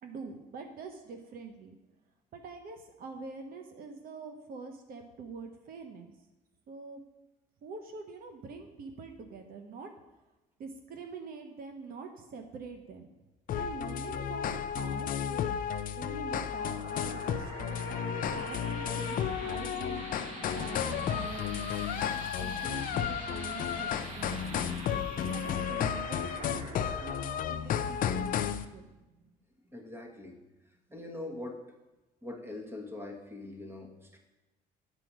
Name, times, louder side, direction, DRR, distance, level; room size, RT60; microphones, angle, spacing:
voice 1, 0.0-1.8 2.3-6.1 6.7-7.0 7.6-9.9 10.6-13.1 13.6-15.5 16.0-22.0 22.4-24.8 25.3-28.9, right 4 dB, 60° right, 5 dB, 1.0 m, -45 dB
sound 1, 13.5-28.6, left 8 dB, 55° left, 0.5 m, -33 dB
sound 2, 16.1-29.3, right 2 dB, 45° right, 1.7 m, -45 dB
voice 2, 29.7-30.4 30.9-31.6 32.2-34.2, left 2 dB, 15° right, 2 dB, 1.4 m, -42 dB
9.0 x 4.8 x 6.2 m, 1.0 s
cardioid pair, 110°, 17 cm